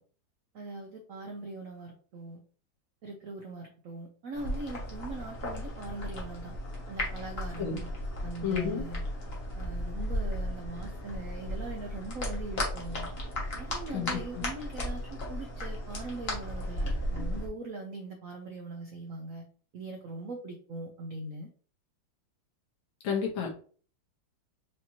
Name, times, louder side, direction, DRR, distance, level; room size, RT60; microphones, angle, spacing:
voice 1, 0.5-2.4 3.0-6.6 6.9-7.9 8.2-9.0 9.6-13.1 13.6-19.5 19.7-21.5, right 3 dB, 80° right, 3 dB, 0.7 m, -41 dB
sound 1, 4.3-17.5, left 1 dB, 40° left, 1.0 m, -35 dB
voice 2, 8.4-8.8 13.9-14.4 23.0-23.6, left 7 dB, 75° left, 0 dB, 1.8 m, -31 dB
5.0 x 2.8 x 2.8 m, 0.42 s
omnidirectional pair, 2.2 m